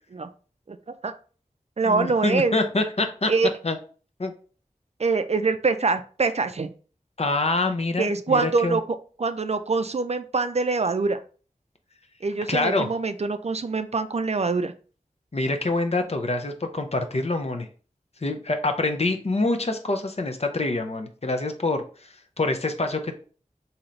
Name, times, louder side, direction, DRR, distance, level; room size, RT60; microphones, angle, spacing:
voice 1, 0.7-1.1 1.8-2.5 3.3-3.5 5.0-6.7 8.0-8.8 9.2-11.2 12.2-14.7, right 4 dB, 50° right, 10 dB, 0.4 m, -24 dB
voice 2, 1.8-3.3 3.6-3.8 4.2-4.3 7.2-8.8 12.5-12.9 15.3-17.7 18.2-22.1 22.4-23.1, left 2 dB, 50° left, 5 dB, 0.6 m, -26 dB
3.8 x 2.8 x 3.1 m, 0.39 s
wide cardioid pair, 50°, 14 cm